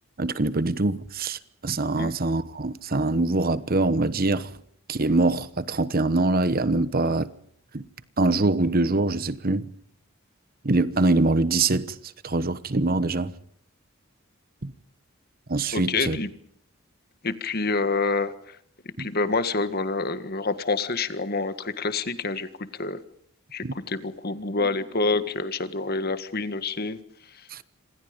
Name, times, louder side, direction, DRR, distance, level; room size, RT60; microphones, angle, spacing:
voice 1, 0.2-4.5 4.9-7.3 7.7-7.9 8.2-9.7 10.6-12.0 12.2-13.3 14.6-14.7 15.5-16.2 19.0-19.1 23.6-23.7 27.5-27.6, right 2 dB, 45° right, 1.1 m, -24 dB
voice 2, 15.7-16.3 17.2-18.6 19.0-23.0 23.5-27.6, left 3 dB, 45° left, 1.7 m, -27 dB
28.0 x 26.0 x 5.3 m
head